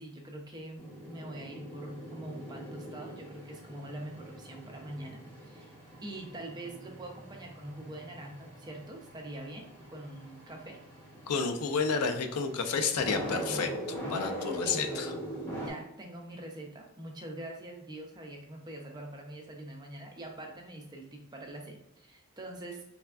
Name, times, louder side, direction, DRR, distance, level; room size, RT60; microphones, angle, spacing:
voice 1, 0.0-5.7 6.0-10.8 14.6-15.2 15.6-22.8, right 1 dB, 20° right, 1 dB, 0.5 m, -44 dB
sound 1, 0.8-15.7, equal, 10° left, 1.0 m, -42 dB
voice 2, 11.3-15.1, left 5 dB, 90° left, 6 dB, 0.5 m, -31 dB
3.5 x 3.3 x 2.3 m, 0.81 s
head